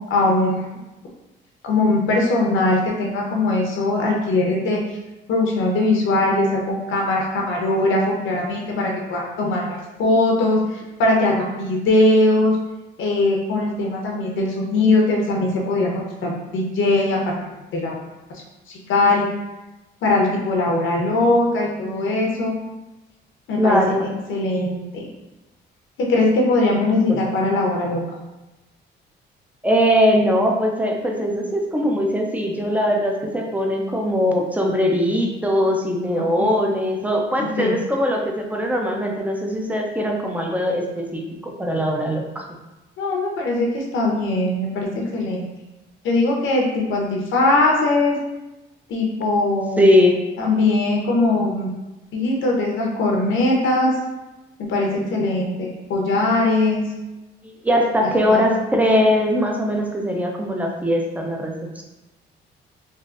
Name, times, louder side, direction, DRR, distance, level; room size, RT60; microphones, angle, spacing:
voice 1, 0.1-0.7 1.6-4.8 5.3-12.6 13.0-15.9 16.2-17.4 17.7-18.0 18.9-19.3 20.0-22.5 23.5-23.8 24.3-25.0 26.0-28.0 36.1-36.5 37.6-37.8 43.0-45.4 46.0-48.2 48.9-49.8 50.4-51.7 52.1-53.9 54.6-56.8 58.0-58.4, left 2 dB, 75° left, -1 dB, 0.8 m, -20 dB
voice 2, 23.6-24.0 27.1-27.2 29.6-42.4 49.8-50.2 57.4-61.8, equal, 5° right, 1 dB, 0.5 m, -20 dB
3.7 x 2.6 x 2.5 m, 1.0 s
cardioid pair, 90°, 20 cm